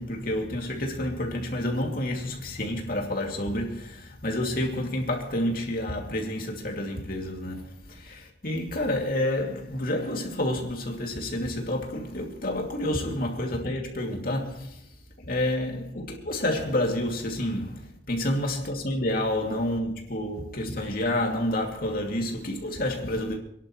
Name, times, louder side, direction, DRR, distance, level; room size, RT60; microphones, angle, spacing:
voice 1, 0.0-14.8 15.2-23.4, left 1 dB, 50° left, 2.6 m, -29 dB
28.0 x 11.0 x 3.2 m
head